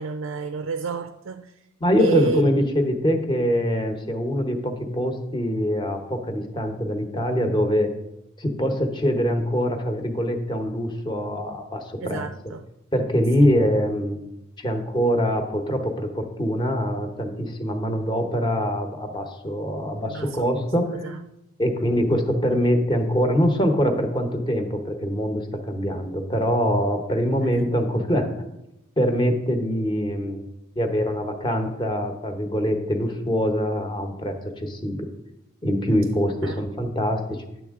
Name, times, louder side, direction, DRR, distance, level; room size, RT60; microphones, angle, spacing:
voice 1, 0.0-1.5 2.0-2.5 12.0-12.6 20.1-20.7 21.0-21.2 27.6-27.7 36.4-36.6, right 4 dB, 75° right, 0.4 m, -29 dB
voice 2, 1.8-7.9 8.4-12.2 12.9-14.2 14.6-21.0 21.6-28.3 29.0-30.4 30.8-35.1 35.6-37.4, equal, 25° left, 0.9 m, -24 dB
9.9 x 7.2 x 3.6 m
head